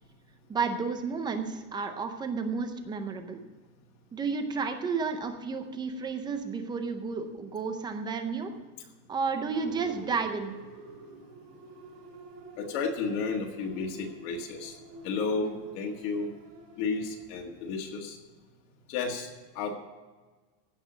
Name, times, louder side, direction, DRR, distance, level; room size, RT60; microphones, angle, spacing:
voice 1, 0.5-3.4 4.1-8.5 9.1-10.5 15.4-15.6, right 5 dB, 10° right, 7 dB, 0.5 m, -32 dB
sound 1, 9.5-18.2, right 1 dB, 85° right, 4.9 m, -49 dB
voice 2, 12.6-14.7 15.0-16.3 16.8-18.2 18.9-19.3 19.6-19.8, left 4 dB, 45° left, 1 dB, 1.8 m, -32 dB
16.0 x 5.9 x 7.9 m, 1.3 s
supercardioid pair, 165°, 47 cm